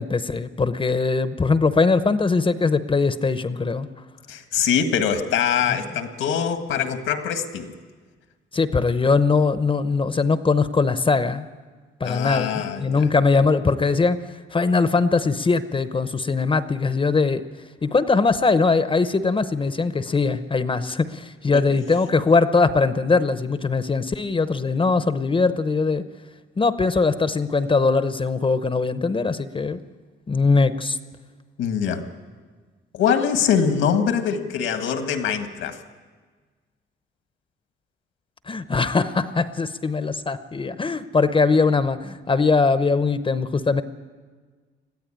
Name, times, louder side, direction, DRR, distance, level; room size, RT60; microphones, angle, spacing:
voice 1, 0.0-3.9 5.7-5.8 8.5-11.4 12.0-14.2 14.5-17.4 17.8-26.0 26.6-29.8 30.3-31.0 38.5-43.8, left 4 dB, 25° left, 12 dB, 0.8 m, -21 dB
voice 2, 4.3-7.7 12.0-13.1 21.5-21.6 31.6-32.0 32.9-35.8, left 7 dB, 85° left, 7 dB, 1.8 m, -23 dB
21.0 x 14.0 x 8.8 m, 1.5 s
cardioid pair, 90°, 20 cm